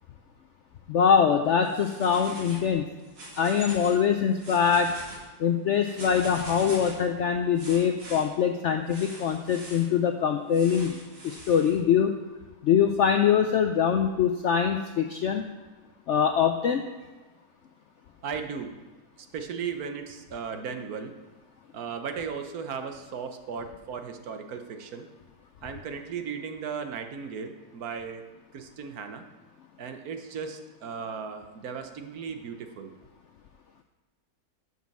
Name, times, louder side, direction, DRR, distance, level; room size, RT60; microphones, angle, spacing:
voice 1, 0.9-2.9 3.4-4.9 5.4-11.0 11.2-12.2 12.6-15.4 16.1-16.8, left 7 dB, 75° left, 5 dB, 0.6 m, -23 dB
sound 1, 1.6-2.7 3.0-4.0 4.3-5.2 5.8-7.0 7.6-8.2 8.9-9.9 10.5-11.7, right 1 dB, 90° right, 2.9 m, -43 dB
voice 2, 18.2-18.7 19.3-21.1 21.7-25.1 25.6-28.3 28.5-29.2 29.8-32.9, right 6 dB, 65° right, 6 dB, 1.3 m, -36 dB
7.7 x 5.7 x 7.2 m, 1.2 s
omnidirectional pair, 1.8 m